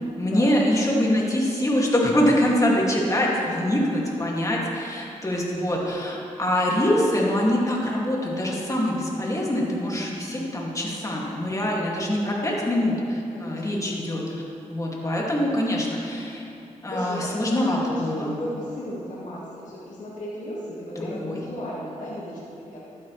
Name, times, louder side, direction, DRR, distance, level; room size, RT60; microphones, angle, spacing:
voice 1, 0.2-14.2 14.7-16.5 16.8-18.3 21.0-21.4, left 1 dB, 25° left, -3 dB, 2.2 m, -24 dB
voice 2, 12.1-12.8 13.3-13.6 16.9-22.8, equal, 75° left, -7 dB, 1.7 m, -36 dB
12.5 x 8.7 x 3.2 m, 2.8 s
cardioid pair, 60°, 13 cm